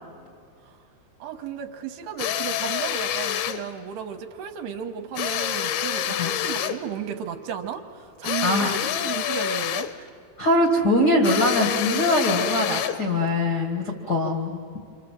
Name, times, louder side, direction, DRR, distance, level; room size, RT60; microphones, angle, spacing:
voice 1, 1.2-10.1, right 8 dB, 75° right, 5 dB, 2.9 m, -34 dB
sound 1, 2.2-3.6 5.2-6.8 8.2-10.0 11.2-13.1, left 11 dB, 75° left, 2.5 m, -27 dB
voice 2, 8.4-8.8 10.4-14.6, left 1 dB, 60° left, -3 dB, 1.0 m, -22 dB
28.0 x 26.0 x 7.5 m, 2.3 s
omnidirectional pair, 5.0 m